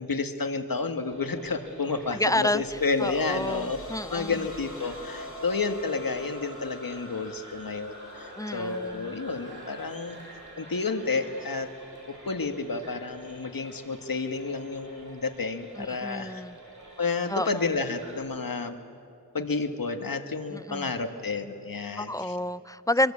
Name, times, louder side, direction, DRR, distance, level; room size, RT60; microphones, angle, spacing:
voice 1, 0.0-3.8 4.1-10.2 10.6-11.7 12.3-16.4 17.0-18.8 19.3-22.4, left 4 dB, 70° left, 7 dB, 1.6 m, -30 dB
sound 1, 1.1-18.2, right 1 dB, 55° right, 7.6 m, -50 dB
voice 2, 2.1-4.4 8.4-9.2 15.8-16.6 17.3-17.6 20.5-20.9 22.0-23.1, left 1 dB, 10° left, 16 dB, 0.6 m, -30 dB
sound 2, 2.3-12.9, left 1 dB, 40° left, 5.2 m, -47 dB
Crowd, 7.5-12.3, equal, 30° right, 6.3 m, -51 dB
24.5 x 22.5 x 8.5 m, 2.6 s
wide cardioid pair, 60°, 36 cm